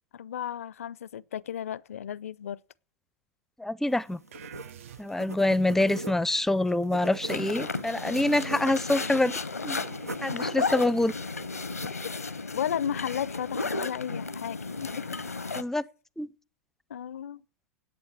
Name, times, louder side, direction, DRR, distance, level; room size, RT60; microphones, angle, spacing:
voice 1, 0.1-2.6 12.5-15.3 16.9-17.4, left 9 dB, 70° left, 0.5 m, -34 dB
voice 2, 3.6-4.2 5.0-9.8 10.2-11.1 15.6-15.8 16.2-16.3, left 1 dB, 5° left, 0.5 m, -26 dB
sound 1, 3.9-11.9, right 2 dB, 90° right, 1.0 m, -43 dB
sound 2, 4.3-5.5, right 10 dB, 60° right, 0.6 m, -47 dB
sound 3, 7.3-15.6, left 3 dB, 90° left, 0.9 m, -34 dB
10.0 x 8.9 x 9.9 m
figure-of-eight pair, 95°, 8 cm